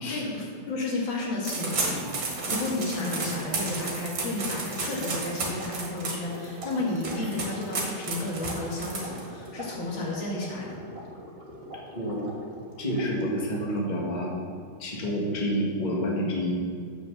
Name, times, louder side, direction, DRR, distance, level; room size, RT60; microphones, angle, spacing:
voice 1, 0.1-10.8, left 2 dB, 80° left, -3 dB, 2.5 m, -32 dB
sound 1, 1.4-9.5, right 3 dB, 75° right, 2.3 m, -32 dB
sound 2, 4.3-13.8, equal, 35° right, 1.5 m, -44 dB
voice 2, 11.9-12.3 12.8-14.4 14.8-16.6, equal, 25° left, -3 dB, 1.4 m, -28 dB
7.6 x 6.3 x 6.4 m, 2.2 s
omnidirectional pair, 2.1 m